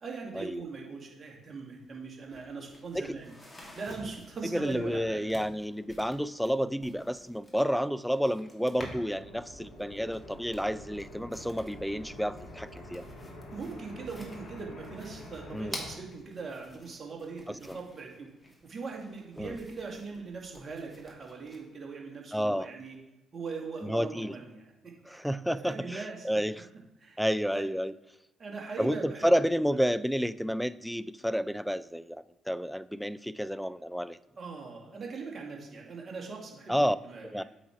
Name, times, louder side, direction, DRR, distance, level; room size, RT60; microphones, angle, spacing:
voice 1, 0.0-3.3 3.8-5.4 13.5-18.3 18.6-23.0 23.3-25.2 25.5-26.4 27.0-27.2 27.5-27.6 28.4-29.3 34.4-37.4, right 4 dB, 45° right, 0 dB, 2.0 m, -41 dB
sound 1, 1.8-1.9 2.1-9.2 9.6-21.6, left 1 dB, 15° left, 2.2 m, -50 dB
voice 2, 4.5-13.0 15.5-15.8 17.5-17.8 19.4-19.6 22.3-22.7 23.8-24.3 25.1-26.7 27.2-27.9 28.8-34.2 36.7-37.0 37.3-37.4, equal, ahead, 16 dB, 0.3 m, -30 dB
sound 2, 9.1-16.0, left 1 dB, 70° left, 2.0 m, -47 dB
8.1 x 4.4 x 4.7 m, 0.97 s
hypercardioid pair, 45°, 0 cm